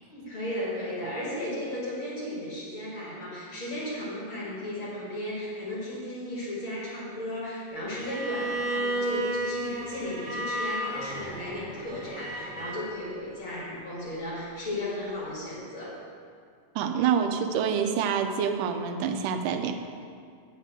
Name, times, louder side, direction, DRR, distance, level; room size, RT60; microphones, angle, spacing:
voice 1, 0.1-16.0, left 1 dB, 45° left, -7 dB, 2.6 m, -35 dB
Bowed string instrument, 7.9-12.9, right 1 dB, 25° right, 2.8 m, -32 dB
voice 2, 16.8-19.8, right 7 dB, 85° right, 6 dB, 2.3 m, -27 dB
8.9 x 5.5 x 7.5 m, 2.3 s
omnidirectional pair, 3.6 m